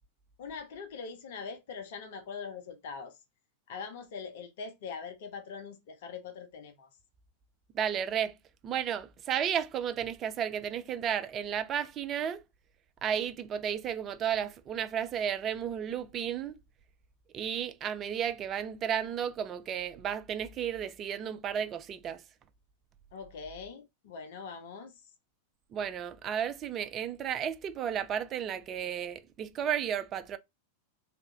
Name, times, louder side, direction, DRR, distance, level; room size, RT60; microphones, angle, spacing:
voice 1, 0.4-3.2 3.7-6.9 23.1-24.9, left 5 dB, 55° left, 0.7 m, -42 dB
voice 2, 7.7-8.4 8.6-12.4 13.0-16.6 17.3-22.2 25.7-30.4, right 8 dB, 30° right, 0.4 m, -33 dB
3.2 x 2.5 x 3.2 m
figure-of-eight pair, 90°, 0 cm